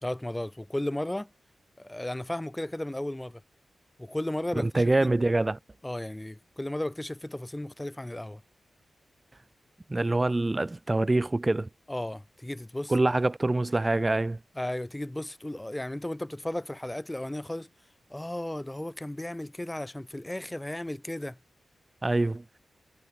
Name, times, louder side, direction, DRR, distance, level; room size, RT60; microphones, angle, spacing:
voice 1, 0.0-1.3 1.8-3.4 4.0-5.1 5.8-8.4 11.9-12.9 14.6-17.7 18.1-21.4, left 1 dB, 15° left, 3.1 m, -34 dB
voice 2, 4.6-5.6 9.9-11.7 12.9-14.4 22.0-22.4, right 2 dB, 25° right, 2.4 m, -25 dB
cardioid pair, 60°, 0 cm